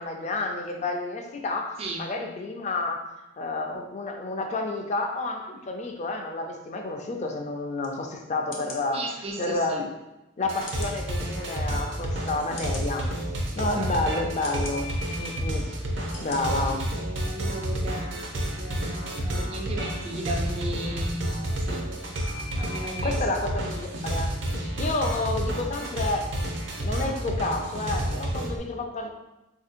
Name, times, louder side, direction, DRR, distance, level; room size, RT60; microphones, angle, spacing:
voice 1, 0.0-3.0 3.4-9.1 9.4-9.9 10.4-13.1 13.5-14.9 15.2-15.7 16.2-16.8 17.9-18.0 23.0-26.3 26.8-29.1, left 2 dB, 35° left, 3 dB, 0.4 m, -30 dB
sound 1, 7.8-7.9 8.5-8.8 9.6-9.7 10.7-11.0 11.7-11.8 12.6-12.9 13.6-13.8 14.4-14.8 15.5-15.6 16.1-16.4 16.8-16.9, left 3 dB, 70° left, 0.7 m, -41 dB
voice 2, 8.9-9.6 13.6-13.9 17.2-18.3 18.6-21.9 22.6-23.2, right 1 dB, 30° right, 1 dB, 0.4 m, -35 dB
sound 2, 10.4-28.6, right 1 dB, 75° right, 0.7 m, -30 dB
4.1 x 2.7 x 2.5 m, 0.98 s
head